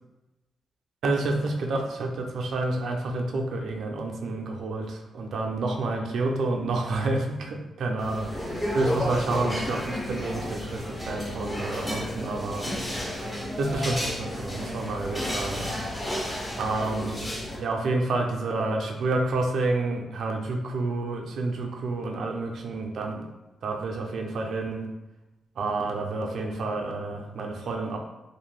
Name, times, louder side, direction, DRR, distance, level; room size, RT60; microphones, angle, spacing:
voice 1, 1.0-12.7 13.6-15.7 16.6-17.3 17.6-23.3 23.6-24.9 25.6-28.0, right 2 dB, 70° right, 2 dB, 0.4 m, -29 dB
sound 1, 8.0-17.6, left 1 dB, 10° left, 0.6 m, -32 dB
2.5 x 2.1 x 3.2 m, 1.0 s
cardioid pair, 130°, 0 cm